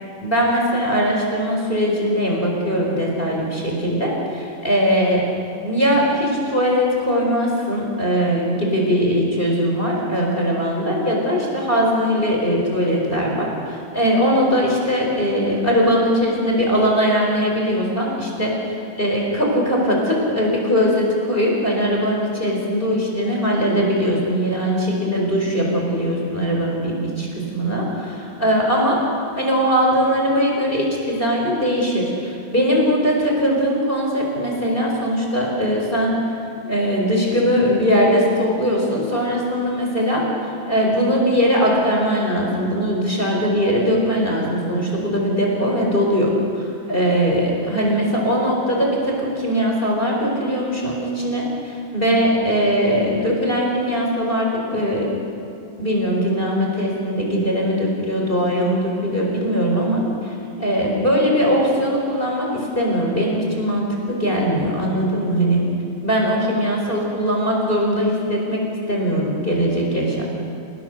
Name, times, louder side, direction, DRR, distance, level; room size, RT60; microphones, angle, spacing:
voice 1, 0.2-5.3 5.6-27.3 27.5-29.0 29.4-36.1 36.6-40.2 40.7-55.1 55.8-65.6 66.0-68.6 68.9-70.2, equal, 10° left, -2 dB, 4.5 m, -20 dB
28.5 x 19.5 x 6.9 m, 2.5 s
omnidirectional pair, 5.5 m